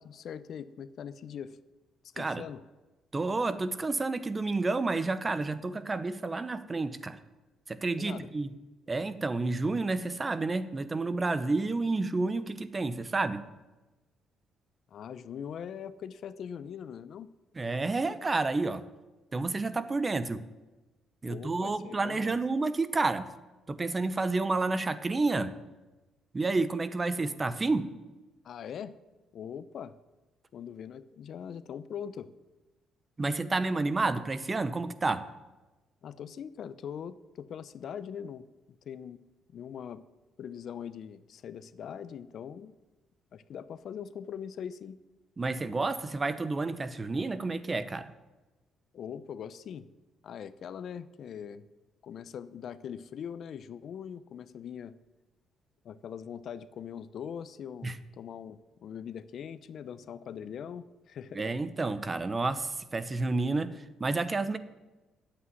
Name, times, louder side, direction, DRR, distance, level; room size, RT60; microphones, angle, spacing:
voice 1, 0.0-1.6 2.1-2.6 8.0-8.3 14.9-17.3 21.2-22.4 28.4-29.0 29.3-29.9 30.5-32.3 36.0-38.5 38.9-39.2 39.5-40.0 40.4-42.8 43.3-45.0 48.9-49.9 50.2-51.6 52.0-54.9 55.8-61.5, left 8 dB, 60° left, 15 dB, 0.7 m, -41 dB
voice 2, 3.1-7.2 7.7-8.5 8.9-13.4 17.6-18.8 19.3-20.4 21.2-23.3 23.7-25.5 26.3-27.9 33.2-35.2 45.4-48.1 57.8-58.0 61.3-64.6, right 3 dB, 25° right, 14 dB, 1.0 m, -30 dB
10.0 x 8.5 x 9.5 m, 1.1 s
cardioid pair, 90°, 0 cm